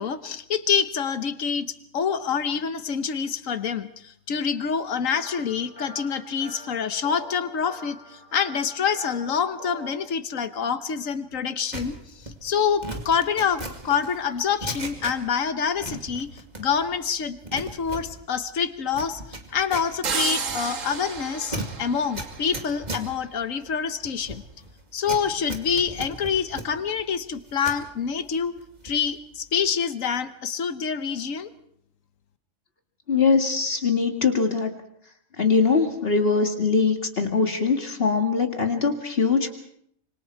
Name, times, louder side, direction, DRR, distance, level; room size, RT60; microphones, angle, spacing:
voice 1, 0.0-19.2 19.5-24.4 24.9-28.6 28.8-31.5, left 7 dB, 85° left, 11 dB, 1.5 m, -26 dB
sound 1, 5.1-9.9, equal, 30° left, 6.6 m, -44 dB
sound 2, 11.7-15.5 15.8-17.0 17.2-27.9 28.3-29.1 29.4-29.7, right 1 dB, 35° right, 2.4 m, -38 dB
sound 3, 20.0-22.9, right 5 dB, 80° right, 1.8 m, -31 dB
voice 2, 33.1-34.7 35.4-39.5, left 5 dB, 50° left, 4 dB, 2.3 m, -22 dB
26.0 x 25.0 x 4.7 m, 0.71 s
omnidirectional pair, 1.3 m